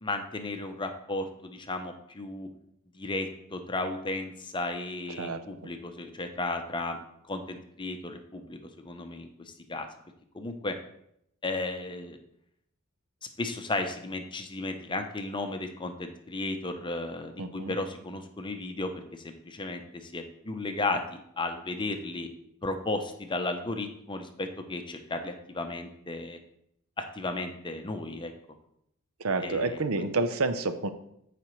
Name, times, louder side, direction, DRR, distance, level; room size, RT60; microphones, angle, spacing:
voice 1, 0.0-2.5 2.9-7.0 7.3-9.3 9.7-9.9 10.3-10.7 11.4-12.2 13.4-22.3 22.6-26.4 27.0-28.3 29.4-30.1, left 2 dB, 20° left, 6 dB, 0.7 m, -34 dB
voice 2, 17.4-17.8 29.2-30.9, right 3 dB, 80° right, 10 dB, 0.7 m, -29 dB
14.5 x 5.0 x 3.1 m, 0.75 s
head